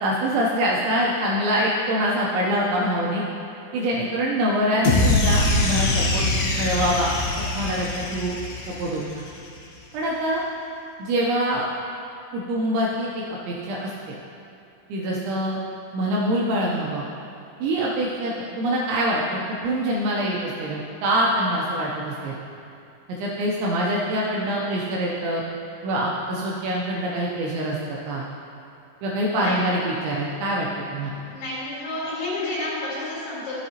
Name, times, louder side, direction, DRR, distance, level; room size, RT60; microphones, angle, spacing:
voice 1, 0.0-3.2 3.7-6.2 6.5-7.1 7.5-8.4 8.7-9.2 9.9-10.4 11.0-11.7 12.3-14.2 14.9-15.6 15.9-17.0 17.6-22.4 23.2-25.4 25.8-28.3 29.0-31.1, equal, 80° right, -4 dB, 2.7 m, -25 dB
sound 1, 4.8-9.2, left 2 dB, 75° left, 2.4 m, -23 dB
voice 2, 31.2-33.6, left 2 dB, 55° left, -8 dB, 3.8 m, -30 dB
13.0 x 7.7 x 2.9 m, 2.6 s
omnidirectional pair, 5.9 m